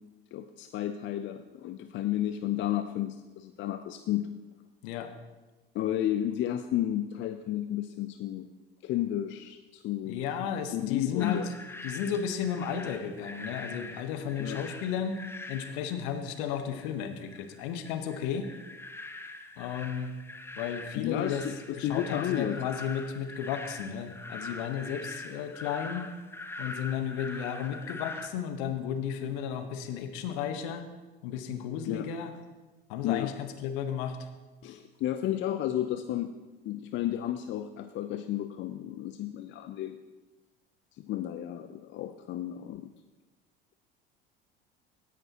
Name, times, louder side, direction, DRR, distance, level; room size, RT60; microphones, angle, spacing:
voice 1, 0.3-4.3 5.7-8.5 8.8-10.2 10.7-11.5 14.4-14.6 21.0-22.6 31.9-32.1 33.0-33.3 34.6-36.3 36.6-40.0 41.0-42.9, left 12 dB, 40° left, 9 dB, 0.6 m, -32 dB
voice 2, 10.0-11.5 11.8-15.2 15.5-18.5 19.6-20.1 20.6-21.4 21.8-26.1 26.6-30.9 31.2-32.3 32.9-34.3, left 8 dB, 60° left, 8 dB, 1.3 m, -33 dB
sound 1, 11.2-28.3, left 2 dB, 10° left, 0.9 m, -43 dB
17.0 x 10.0 x 3.0 m, 1.2 s
figure-of-eight pair, 65°, 29 cm